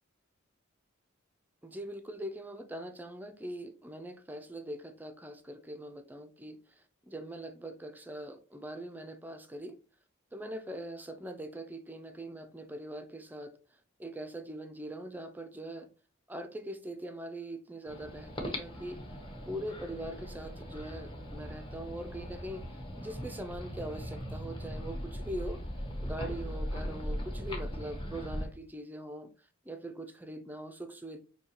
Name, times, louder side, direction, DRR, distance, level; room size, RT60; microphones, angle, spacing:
voice 1, 1.6-6.6 7.1-9.8 10.3-13.5 14.0-15.9 16.3-19.0 19.5-22.6 23.0-25.6 26.0-29.3 29.7-31.2, right 1 dB, 10° right, 0.4 m, -42 dB
sound 1, 17.9-28.5, equal, 25° left, 0.8 m, -39 dB
5.3 x 2.8 x 2.9 m
head